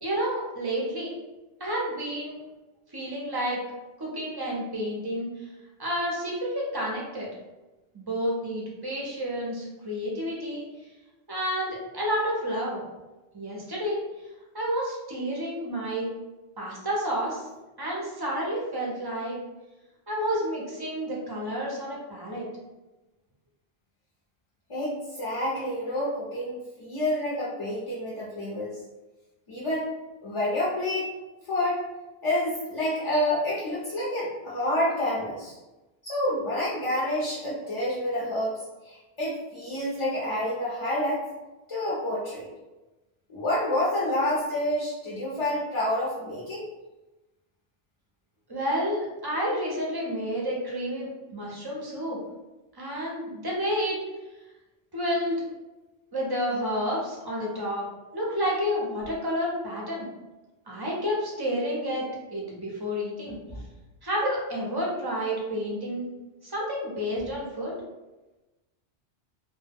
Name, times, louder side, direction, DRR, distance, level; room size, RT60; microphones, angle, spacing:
voice 1, 0.0-1.2 1.6-2.4 2.9-3.6 4.0-5.3 5.8-7.3 7.9-10.6 11.3-12.8 13.3-14.0 14.5-16.1 16.6-17.5 17.8-19.4 20.1-22.5 48.5-52.2 52.7-54.0 54.9-55.4 56.1-57.8 58.1-60.1 60.7-63.4 64.0-66.1 66.4-67.8, equal, 35° right, -3 dB, 0.4 m, -30 dB
voice 2, 24.7-28.7 29.5-29.9 30.2-31.1 31.5-31.8 32.2-35.6 36.0-38.5 38.8-41.3 41.7-42.5 43.3-46.7 63.5-63.6, left 1 dB, 45° left, -7 dB, 0.4 m, -28 dB
2.1 x 2.1 x 3.4 m, 1.1 s
omnidirectional pair, 1.1 m